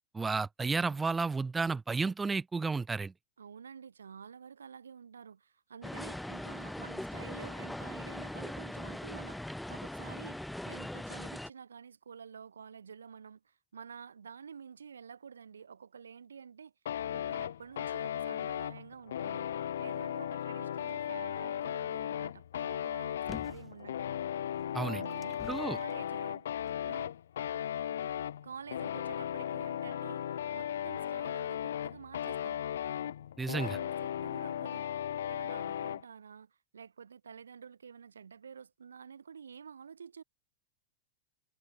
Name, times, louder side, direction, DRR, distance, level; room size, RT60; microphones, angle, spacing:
voice 1, 0.1-3.1 24.7-25.0 25.5-25.8 33.4-33.8, right 4 dB, 10° right, 0.7 m, -32 dB
voice 2, 3.4-16.7 17.1-24.1 24.8-26.5 26.8-27.1 28.4-32.6 33.5-34.9 35.3-40.2, right 6 dB, 70° right, 6.8 m, -49 dB
sound 1, 5.8-11.5, left 1 dB, 5° left, 2.6 m, -40 dB
sound 2, 16.9-36.0, left 10 dB, 65° left, 1.4 m, -36 dB
sound 3, 23.3-23.8 24.6-25.9 26.7-26.8, left 6 dB, 20° left, 1.1 m, -47 dB
figure-of-eight pair, 90°, 0 cm